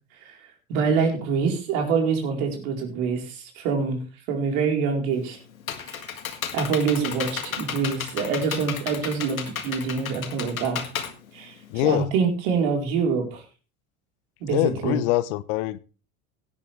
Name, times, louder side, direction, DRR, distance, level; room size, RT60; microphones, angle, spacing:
voice 1, 0.7-4.0 4.3-5.4 5.8-6.1 6.5-10.8 11.3-13.4 14.4-15.0, right 5 dB, 60° right, 4.4 m, -25 dB
Computer keyboard, 5.1-12.0, left 7 dB, 80° left, 1.9 m, -33 dB
voice 2, 11.7-12.1 14.5-15.8, left 17 dB, 55° left, 0.9 m, -24 dB
17.0 x 9.8 x 3.5 m
hypercardioid pair, 80°, 41 cm